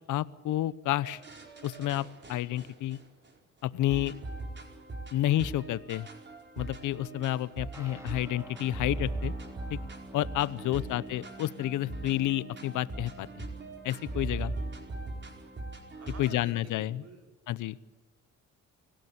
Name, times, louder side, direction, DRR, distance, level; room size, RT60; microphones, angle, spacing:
voice 1, 0.1-1.2 1.6-3.0 3.6-4.2 5.1-6.1 6.6-9.3 9.7-9.8 10.1-13.4 13.8-14.5 16.2-17.0 17.5-17.8, left 14 dB, 80° left, 18 dB, 0.9 m, -30 dB
sound 1, 1.0-3.3 3.9-16.4, right 2 dB, 35° right, 4.7 m, -40 dB
sound 2, 7.7-16.0, right 1 dB, 10° right, 2.7 m, -51 dB
voice 2, 16.0-17.3, right 3 dB, 55° right, 2 dB, 5.5 m, -50 dB
25.5 x 17.0 x 8.6 m, 1.2 s
cardioid pair, 90°, 30 cm